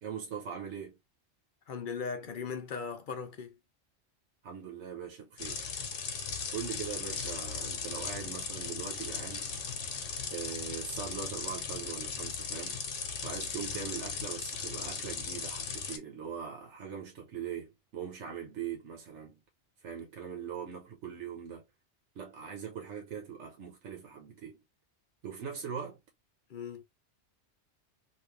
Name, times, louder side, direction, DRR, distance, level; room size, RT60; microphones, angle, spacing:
voice 1, 0.0-1.0 4.4-5.6 6.5-9.6 10.3-12.8 13.2-19.4 19.8-21.6 22.1-24.6 25.2-26.0, right 7 dB, 85° right, 1.2 m, -41 dB
voice 2, 1.7-3.6 26.5-26.8, left 5 dB, 55° left, 0.7 m, -38 dB
sound 1, 5.4-16.0, left 5 dB, 75° left, 1.1 m, -37 dB
3.1 x 2.5 x 3.1 m
omnidirectional pair, 1.2 m